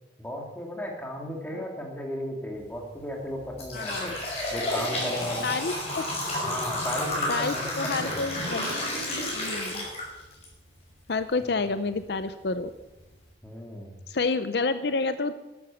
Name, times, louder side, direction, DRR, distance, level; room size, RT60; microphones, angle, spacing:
voice 1, 0.2-4.2 4.5-5.5 6.4-7.7 8.0-8.2 13.4-13.9, equal, 10° left, 1 dB, 2.6 m, -35 dB
sound 1, 2.6-2.8 3.3-10.5 10.9-11.0 11.9-12.0 12.5-12.6 13.0-13.2, left 1 dB, 35° left, 5.9 m, -31 dB
voice 2, 3.7-4.1 5.4-6.0 7.3-8.7 9.3-9.9 11.1-12.7 14.1-15.4, left 3 dB, 65° left, 12 dB, 0.6 m, -29 dB
13.0 x 11.5 x 7.1 m, 1.1 s
head